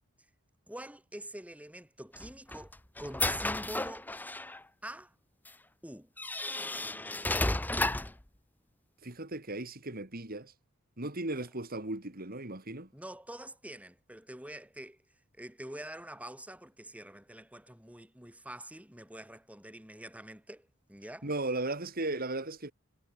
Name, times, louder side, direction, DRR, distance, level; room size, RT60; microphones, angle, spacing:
voice 1, 0.7-4.1 4.8-5.1 5.8-6.1 12.9-15.0 15.4-21.3, right 1 dB, 5° right, 3.7 m, -46 dB
sound 1, 2.1-4.6 5.5-5.6 6.2-8.2, left 2 dB, 10° left, 0.8 m, -33 dB
voice 2, 9.0-10.5 11.0-12.9 21.2-22.7, right 2 dB, 45° right, 3.1 m, -36 dB
head